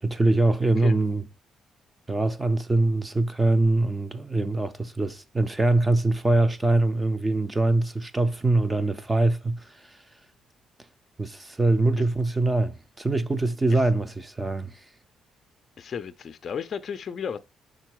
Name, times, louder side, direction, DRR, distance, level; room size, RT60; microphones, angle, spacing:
voice 1, 0.0-1.2 2.1-10.0 11.2-14.8, right 2 dB, 15° right, 0.5 m, -23 dB
voice 2, 15.8-17.4, left 7 dB, 45° left, 0.4 m, -33 dB
5.6 x 3.8 x 4.6 m
cardioid pair, 130°, 0 cm